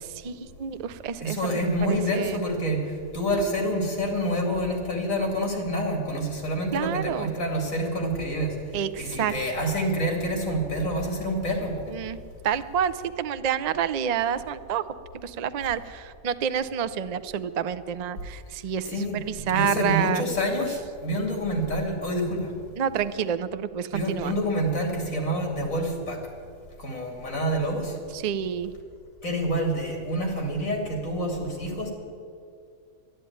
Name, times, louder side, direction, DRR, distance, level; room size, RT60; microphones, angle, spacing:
voice 1, 0.0-2.4 6.7-7.3 8.7-9.3 9.6-9.7 11.9-14.8 15.2-20.2 20.6-20.7 22.8-24.3 28.1-28.7, right 8 dB, 75° right, 13 dB, 0.3 m, -29 dB
voice 2, 1.2-8.5 9.0-11.8 18.8-22.5 23.9-26.2 26.8-28.0 29.2-31.9, equal, 75° left, 1 dB, 3.2 m, -27 dB
12.5 x 11.5 x 9.4 m, 2.3 s
omnidirectional pair, 1.4 m